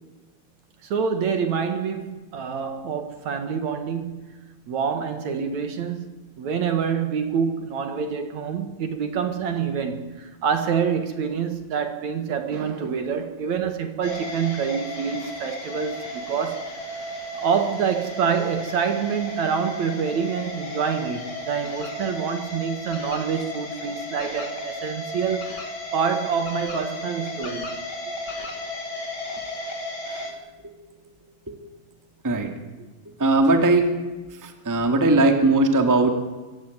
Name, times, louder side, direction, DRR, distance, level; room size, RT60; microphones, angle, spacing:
voice 1, 0.8-4.3 4.7-6.1 6.4-16.7 17.3-25.6 25.9-27.7, right 6 dB, 60° right, 2.6 m, -26 dB
sound 1, 14.0-30.3, left 1 dB, 30° left, 3.4 m, -34 dB
voice 2, 33.2-33.9 34.4-36.1, right 2 dB, 5° right, 1.5 m, -19 dB
24.5 x 16.0 x 9.4 m
omnidirectional pair, 4.1 m